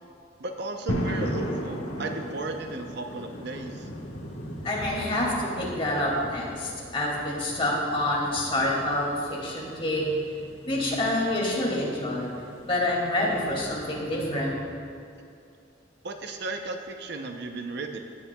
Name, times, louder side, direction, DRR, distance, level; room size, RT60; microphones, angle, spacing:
voice 1, 0.4-3.9 16.0-18.0, right 3 dB, 60° right, 5 dB, 0.6 m, -35 dB
sound 1, 0.9-13.8, equal, 90° left, 1.3 m, -37 dB
voice 2, 4.6-10.3 10.6-14.6, left 1 dB, 30° left, -4 dB, 2.2 m, -27 dB
16.5 x 8.7 x 2.3 m, 2.4 s
head